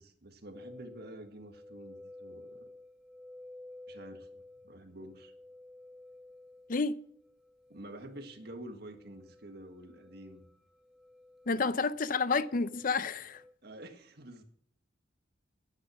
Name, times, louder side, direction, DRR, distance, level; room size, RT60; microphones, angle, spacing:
voice 1, 0.0-2.7 3.9-5.3 7.7-10.5 11.5-11.8 13.6-14.4, right 1 dB, 55° right, 1.7 m, -48 dB
sound 1, 0.5-13.5, left 2 dB, ahead, 2.0 m, -53 dB
voice 2, 11.5-13.4, left 4 dB, 45° left, 0.6 m, -30 dB
11.0 x 10.5 x 6.3 m
head